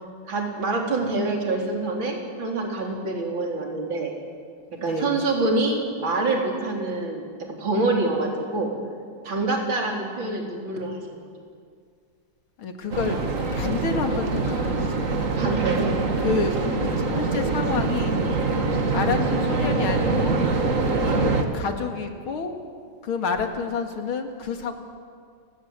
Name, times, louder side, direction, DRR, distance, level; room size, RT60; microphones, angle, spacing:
voice 1, 0.2-4.1 4.8-8.7 9.2-11.2 15.4-16.0, right 2 dB, 70° right, 1 dB, 4.4 m, -26 dB
voice 2, 4.7-5.2 12.6-13.2 13.5-15.2 16.2-18.1 18.9-20.4 21.5-22.6 23.0-24.7, left 4 dB, 90° left, 5 dB, 2.9 m, -29 dB
sound 1, 12.9-21.4, right 3 dB, 40° right, 2.0 m, -24 dB
29.5 x 18.5 x 8.2 m, 2.1 s
omnidirectional pair, 2.2 m